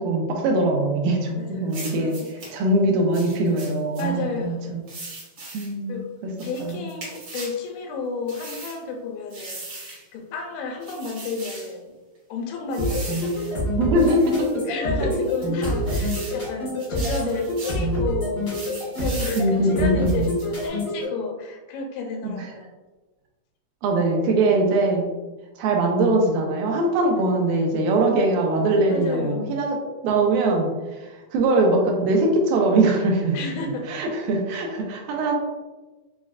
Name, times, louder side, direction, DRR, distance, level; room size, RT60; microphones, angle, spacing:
voice 1, 0.0-2.1 2.5-4.6 5.5-6.0 6.6-6.8 13.8-14.5 19.4-20.1 22.2-22.5 23.8-25.1 25.6-29.8 30.0-33.4 33.9-35.3, right 2 dB, 80° right, 1 dB, 2.2 m, -21 dB
voice 2, 1.3-2.5 4.0-4.8 5.9-6.0 6.4-11.9 12.3-13.8 14.7-18.6 19.0-22.7 27.2-27.3 28.9-29.5 33.3-33.9, left 4 dB, 85° left, 2 dB, 2.5 m, -32 dB
sound 1, 1.7-2.5 3.1-4.1 4.9-5.7 6.4-7.6 8.3-8.8 9.3-10.0 10.8-11.7 12.7-13.5 14.0-14.5 15.1-16.4 16.8-17.8 18.5-19.5 20.0-20.7, right 2 dB, 65° right, 1.3 m, -39 dB
sound 2, 12.8-21.0, left 1 dB, 70° left, 0.7 m, -26 dB
6.1 x 2.0 x 2.3 m, 1.2 s
omnidirectional pair, 4.2 m